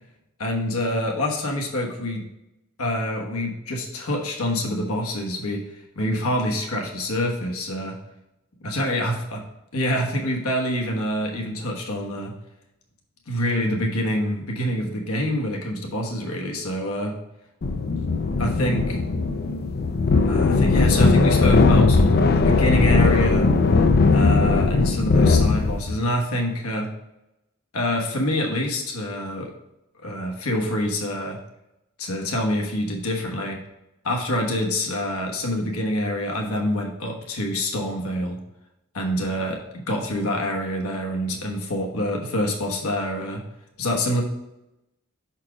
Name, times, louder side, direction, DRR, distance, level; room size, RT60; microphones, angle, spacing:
voice 1, 0.4-2.2 2.8-8.0 8.6-9.4 9.7-12.3 13.3-17.2 18.4-19.0 20.2-23.5 24.1-26.9 27.7-29.5 30.0-31.4 32.0-33.6 34.0-38.4 38.9-43.4 43.8-44.2, left 1 dB, 80° left, 0 dB, 1.3 m, -26 dB
sound 1, 17.6-26.0, left 3 dB, 45° left, 0.5 m, -18 dB
5.9 x 4.4 x 4.9 m, 0.89 s
head